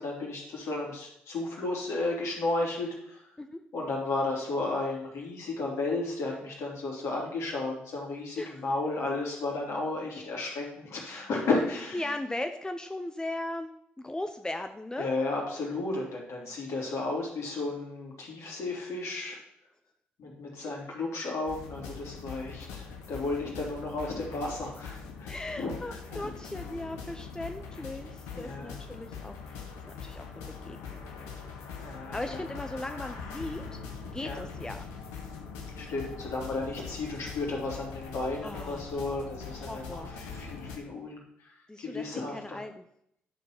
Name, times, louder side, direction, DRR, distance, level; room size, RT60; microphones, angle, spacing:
voice 1, 0.0-3.4 3.7-12.1 15.0-19.4 20.2-26.3 28.3-28.8 31.8-32.6 34.2-34.4 35.8-42.6, left 2 dB, 60° left, -2 dB, 3.3 m, -33 dB
voice 2, 11.9-13.7 14.0-15.1 25.3-29.6 30.0-31.3 32.1-33.8 34.0-34.9 38.4-38.9 39.6-40.1 41.7-42.8, left 1 dB, 15° left, 7 dB, 0.8 m, -38 dB
sound 1, 21.5-40.8, left 5 dB, 80° left, 1.3 m, -42 dB
11.0 x 4.7 x 6.0 m, 0.73 s
hypercardioid pair, 45°, 5 cm